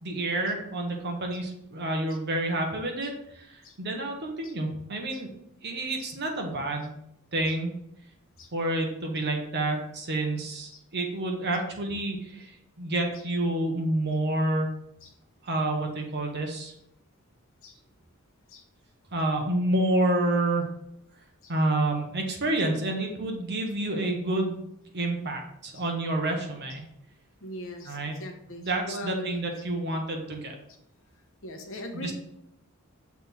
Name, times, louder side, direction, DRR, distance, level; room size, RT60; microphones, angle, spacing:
voice 1, 0.0-5.3 5.6-6.9 7.3-7.7 8.5-14.7 15.4-16.7 19.1-20.7 21.5-24.6 24.9-26.8 27.8-28.2 28.6-30.5 31.9-32.1, right 2 dB, 50° right, 2 dB, 1.1 m, -29 dB
voice 2, 27.4-29.4 31.4-32.1, left 1 dB, 65° left, 3 dB, 1.1 m, -41 dB
6.6 x 3.5 x 4.2 m, 0.78 s
head